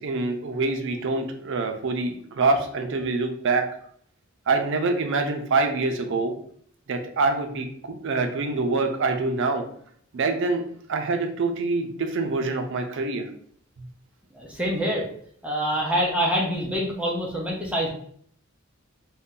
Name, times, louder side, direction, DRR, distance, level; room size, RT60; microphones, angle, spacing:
voice 1, 0.0-3.7 4.5-6.3 6.9-9.6 10.1-10.6 10.9-13.3, right 3 dB, 60° right, 5 dB, 0.5 m, -25 dB
voice 2, 14.3-15.1 15.4-17.9, equal, 5° right, -2 dB, 0.5 m, -25 dB
2.6 x 2.2 x 3.7 m, 0.62 s
head